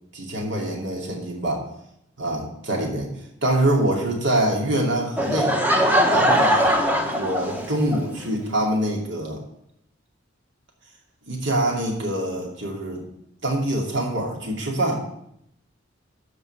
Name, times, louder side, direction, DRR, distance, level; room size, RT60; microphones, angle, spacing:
voice 1, 0.1-1.6 2.2-3.1 3.4-5.5 6.1-6.8 7.1-9.4 11.3-13.0 13.4-15.0, right 1 dB, 65° right, -1 dB, 2.6 m, -25 dB
Laughter / Crowd, 5.2-8.0, equal, 10° right, 1.0 m, -20 dB
12.0 x 4.1 x 7.8 m, 0.77 s
head